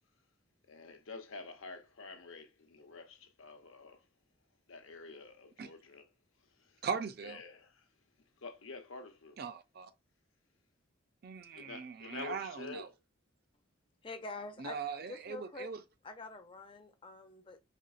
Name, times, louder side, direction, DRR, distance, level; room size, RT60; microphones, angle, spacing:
voice 1, 0.7-4.0 4.7-6.0 6.6-6.8 7.2-7.9 8.4-9.4 11.5-12.9, left 3 dB, 85° left, 0.8 m, -48 dB
voice 2, 6.8-7.4 9.4-9.9 11.2-12.9 14.6-15.8, right 6 dB, 50° right, 0.4 m, -40 dB
voice 3, 14.0-15.7 16.0-17.6, left 3 dB, 25° left, 0.4 m, -46 dB
4.4 x 2.8 x 2.4 m
head